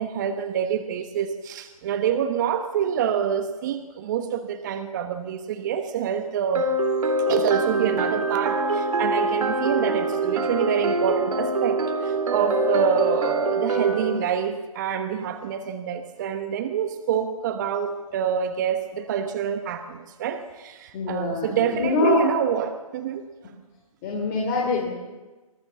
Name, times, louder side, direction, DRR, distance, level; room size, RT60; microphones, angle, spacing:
voice 1, 0.0-6.7 7.3-23.2, right 8 dB, 30° right, 8 dB, 1.2 m, -27 dB
sound 1, 6.5-14.2, right 2 dB, 70° right, 3.2 m, -24 dB
voice 2, 20.9-22.2 24.0-24.9, left 3 dB, 25° left, -1 dB, 3.2 m, -24 dB
24.5 x 15.5 x 7.0 m, 1.2 s
hypercardioid pair, 150°, 19 cm